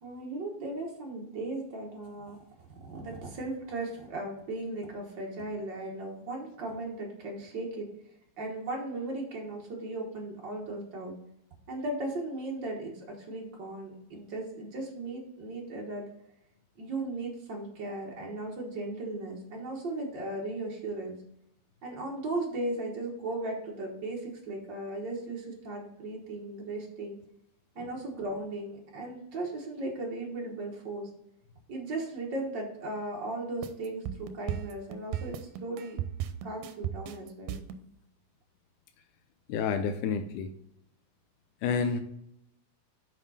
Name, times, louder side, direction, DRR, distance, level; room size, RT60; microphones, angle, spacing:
voice 1, 0.0-2.4 2.8-7.9 8.4-11.2 11.7-16.0 16.8-21.2 21.8-27.2 27.7-31.1 31.7-36.0 36.4-37.6, right 2 dB, 75° right, -1 dB, 1.0 m, -37 dB
sound 1, 33.6-37.8, right 10 dB, 90° right, 2.5 m, -35 dB
voice 2, 39.5-40.5 41.6-42.0, left 6 dB, 85° left, 7 dB, 1.8 m, -29 dB
7.3 x 5.3 x 4.1 m, 0.77 s
omnidirectional pair, 4.2 m